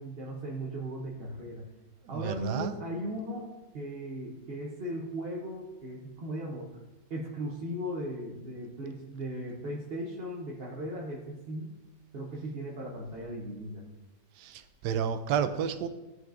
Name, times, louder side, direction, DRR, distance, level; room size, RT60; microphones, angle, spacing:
voice 1, 0.0-1.7 2.1-3.5 3.7-6.7 7.1-11.7 12.1-13.8, equal, 45° right, -3 dB, 0.9 m, -37 dB
voice 2, 2.1-2.8 14.4-15.9, right 8 dB, 80° right, 11 dB, 1.1 m, -31 dB
14.0 x 4.7 x 2.6 m, 1.1 s
omnidirectional pair, 1.8 m